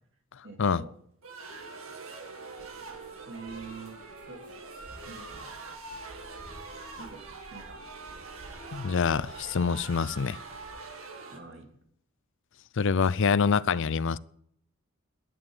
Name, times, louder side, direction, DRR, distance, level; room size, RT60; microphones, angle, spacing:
voice 1, 0.4-0.9 3.3-4.6 5.0-5.6 7.0-7.8 11.3-11.7, right 4 dB, 60° right, 3.0 m, -46 dB
sound 1, 1.2-11.4, right 3 dB, 80° right, 2.4 m, -44 dB
sound 2, 2.6-10.8, right 1 dB, 40° right, 2.9 m, -53 dB
voice 2, 8.7-10.4 12.8-14.2, left 5 dB, 60° left, 0.5 m, -25 dB
11.0 x 11.0 x 8.0 m
head